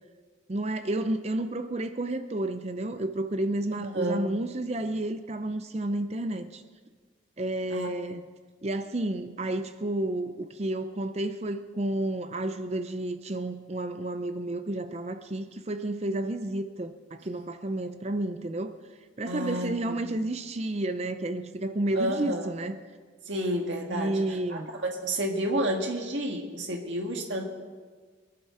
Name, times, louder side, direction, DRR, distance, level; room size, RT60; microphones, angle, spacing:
voice 1, 0.5-6.6 7.4-8.2 8.6-18.7 19.2-22.8 23.9-24.7, right 1 dB, 35° right, 9 dB, 0.6 m, -31 dB
voice 2, 3.7-4.2 7.7-7.9 19.3-20.0 21.9-22.5 23.3-24.2 24.5-27.4, right 1 dB, 70° right, 2 dB, 1.6 m, -30 dB
22.5 x 11.5 x 4.3 m, 1.5 s
head